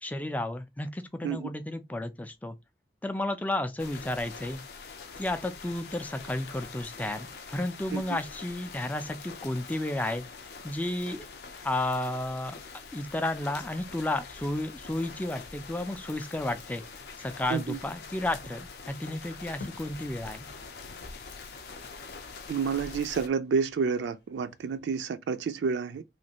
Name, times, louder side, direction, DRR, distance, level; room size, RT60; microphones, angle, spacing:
voice 1, 0.0-2.6 3.0-4.6 5.2-10.3 10.6-11.3 11.6-12.6 12.9-16.8 17.2-20.5, left 1 dB, 10° left, 0.3 m, -32 dB
sound 1, 3.8-23.3, left 4 dB, 70° left, 0.5 m, -45 dB
sound 2, 19.0-24.9, left 3 dB, 85° left, 0.9 m, -52 dB
voice 2, 22.5-26.0, right 5 dB, 90° right, 0.3 m, -29 dB
3.1 x 2.5 x 2.8 m
head